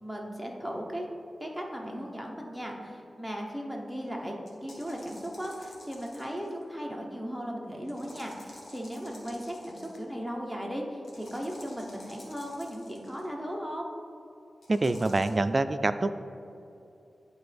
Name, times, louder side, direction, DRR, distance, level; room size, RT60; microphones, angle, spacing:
voice 1, 0.0-1.0 1.4-4.4 4.6-13.9, equal, 5° left, 0 dB, 1.0 m, -37 dB
sound 1, 4.5-6.6 7.9-10.1 11.0-13.2 14.6-15.3, left 1 dB, 75° left, 1.4 m, -50 dB
voice 2, 14.7-16.1, right 2 dB, 40° right, 11 dB, 0.3 m, -26 dB
10.5 x 4.1 x 3.4 m, 2.7 s
wide cardioid pair, 85°, 0 cm